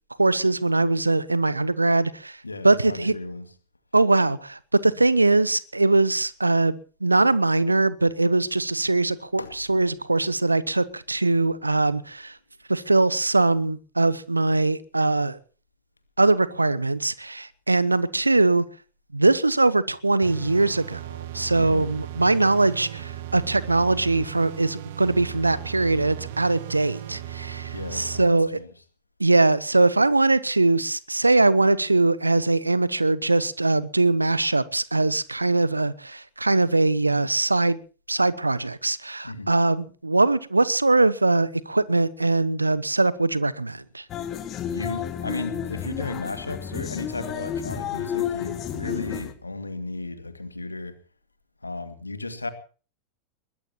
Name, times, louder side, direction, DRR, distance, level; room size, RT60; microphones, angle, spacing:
voice 1, 0.2-2.4 2.6-3.1 3.9-12.4 12.7-15.4 16.2-18.6 19.1-28.6 29.2-37.8 38.1-44.0, right 2 dB, 85° right, 19 dB, 1.0 m, -22 dB
voice 2, 2.4-3.5 9.4-9.6 21.6-21.9 27.7-28.7 39.2-39.5 44.7-51.0 51.6-52.5, left 2 dB, 80° left, 10 dB, 2.3 m, -34 dB
sound 1, 20.2-28.2, right 12 dB, 55° right, 1.6 m, -37 dB
sound 2, 44.1-49.3, left 9 dB, 35° left, 2.3 m, -31 dB
21.0 x 21.0 x 3.0 m, 0.38 s
figure-of-eight pair, 90°, 0 cm